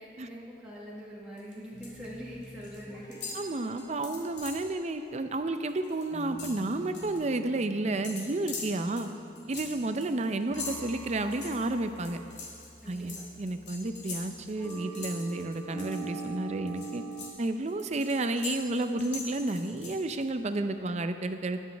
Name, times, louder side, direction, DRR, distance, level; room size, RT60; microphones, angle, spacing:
voice 1, 0.0-3.4 12.8-13.3, equal, 5° right, -7 dB, 1.2 m, -44 dB
sound 1, 1.4-2.1 2.3-2.8 3.1-4.7 5.1-5.3 5.6-7.2 8.0-16.3 16.7-20.3, left 4 dB, 75° left, 2.6 m, -42 dB
sound 2, 1.7-17.3, right 3 dB, 20° left, 0.9 m, -45 dB
voice 2, 3.3-9.1 9.5-12.2 12.9-17.0 17.4-21.6, right 2 dB, 40° right, 8 dB, 0.5 m, -31 dB
20.0 x 7.4 x 3.4 m, 2.5 s
head